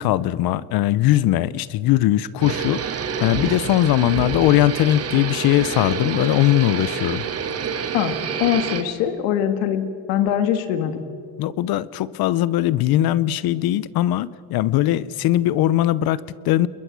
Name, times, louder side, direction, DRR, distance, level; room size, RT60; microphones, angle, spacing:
voice 1, 0.0-2.8 3.2-7.3 11.4-16.7, left 14 dB, 55° left, 19 dB, 0.8 m, -20 dB
sound 1, 2.4-8.8, right 7 dB, 35° right, 1.6 m, -28 dB
voice 2, 7.9-11.0, left 10 dB, 80° left, 9 dB, 2.0 m, -22 dB
29.0 x 21.5 x 6.2 m, 2.4 s
cardioid pair, 130°, 43 cm